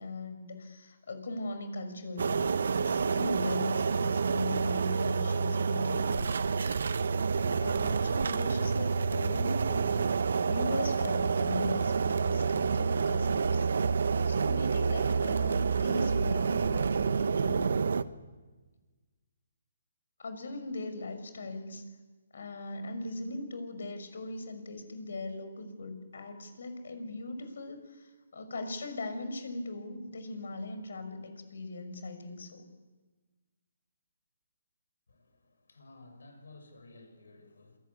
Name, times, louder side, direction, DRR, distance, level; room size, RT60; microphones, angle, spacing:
voice 1, 0.0-6.3 7.3-10.1 10.4-13.7 14.2-17.7 20.2-21.8 22.3-32.6, left 2 dB, 70° left, 9 dB, 6.0 m, -39 dB
sound 1, 2.2-18.0, right 5 dB, 70° right, 1.1 m, -28 dB
voice 2, 35.1-37.8, left 2 dB, 90° left, 6 dB, 6.7 m, -54 dB
27.0 x 20.0 x 8.5 m, 1.3 s
hypercardioid pair, 155°, 0 cm